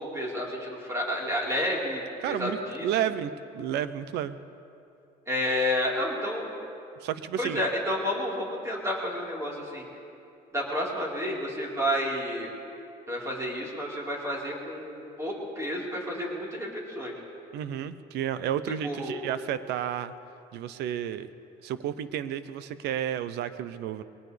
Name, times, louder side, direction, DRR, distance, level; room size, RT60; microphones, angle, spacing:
voice 1, 0.0-2.0 2.3-2.8 5.3-6.5 7.4-9.8 10.5-12.5 13.1-17.1 18.8-19.2, left 1 dB, 15° right, -4 dB, 4.3 m, -30 dB
voice 2, 2.2-4.4 7.0-7.6 17.5-20.1 20.5-21.3 21.6-24.0, right 10 dB, 80° right, 13 dB, 0.7 m, -31 dB
22.5 x 18.5 x 3.4 m, 2.6 s
cardioid pair, 110°, 17 cm